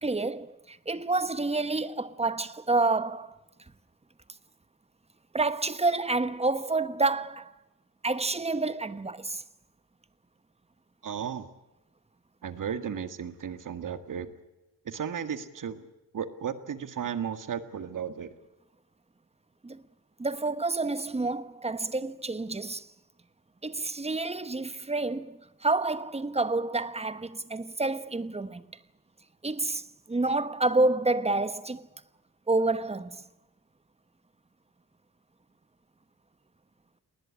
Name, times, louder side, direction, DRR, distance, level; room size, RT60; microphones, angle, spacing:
voice 1, 0.0-3.4 5.3-7.5 8.0-9.4 19.6-19.8 20.2-22.9 23.6-28.8 29.4-31.9 32.5-33.2, right 3 dB, 15° right, 1.1 m, -28 dB
voice 2, 11.0-11.5 12.4-14.4 14.9-15.9 16.1-18.3, right 7 dB, 60° right, 1.9 m, -34 dB
20.5 x 19.5 x 9.9 m
wide cardioid pair, 135°, 35 cm